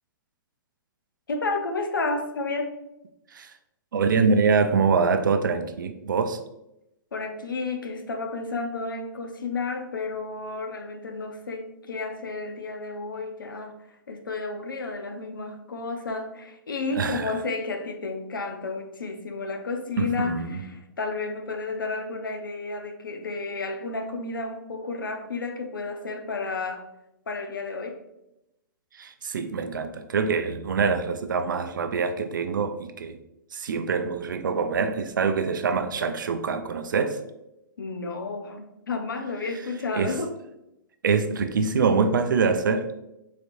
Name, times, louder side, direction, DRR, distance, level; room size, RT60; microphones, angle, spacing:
voice 1, 1.3-2.8 7.1-13.8 14.1-26.9 27.3-28.0 37.8-40.3, left 3 dB, 75° left, 5 dB, 0.6 m, -32 dB
voice 2, 3.9-6.4 16.9-17.3 20.0-20.6 29.0-33.2 33.5-37.2 39.9-40.1 41.0-42.9, right 5 dB, 70° right, 9 dB, 0.4 m, -24 dB
4.1 x 2.9 x 2.5 m, 0.88 s
figure-of-eight pair, 115°, 11 cm